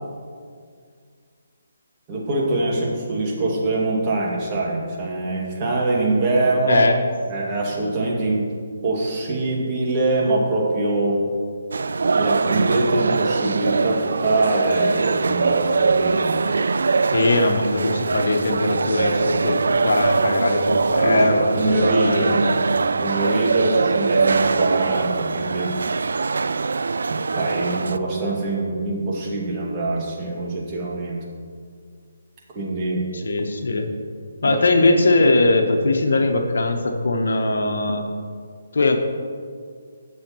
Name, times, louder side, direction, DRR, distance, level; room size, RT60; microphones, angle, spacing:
voice 1, 2.1-6.8 7.3-8.4 8.8-11.2 12.2-16.4 21.0-21.2 21.6-22.4 23.0-25.7 27.1-31.2 32.5-33.0 34.4-34.6, right 2 dB, 30° right, -4 dB, 2.2 m, -23 dB
sound 1, 11.7-28.0, right 4 dB, 70° right, 0.3 m, -22 dB
voice 2, 17.1-22.6 33.1-33.9 34.4-38.0 38.7-39.0, left 2 dB, 70° left, 5 dB, 1.1 m, -20 dB
18.5 x 6.4 x 3.1 m, 2.1 s
figure-of-eight pair, 150°, 0 cm